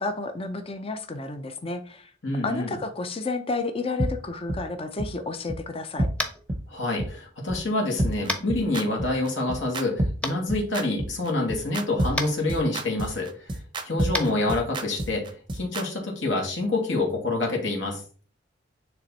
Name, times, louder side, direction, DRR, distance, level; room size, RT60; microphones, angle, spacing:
voice 1, 0.0-2.1 2.4-6.1, left 3 dB, 30° left, 7 dB, 0.6 m, -31 dB
voice 2, 2.2-2.8 6.7-13.5 13.8-15.2 15.5-18.0, left 2 dB, 70° left, 0 dB, 2.5 m, -27 dB
sound 1, 4.0-4.1 4.5-4.6 5.0-5.1 5.5-5.6 6.0-6.1 6.5-6.6 7.0-7.1 7.5-7.6 8.0-15.8, right 1 dB, 25° right, 0.7 m, -27 dB
Tap, 6.2-6.4 8.3-8.4 10.2-10.3 12.1-12.3 14.1-14.3, left 1 dB, 5° left, 1.0 m, -28 dB
9.5 x 3.3 x 4.1 m, 0.42 s
head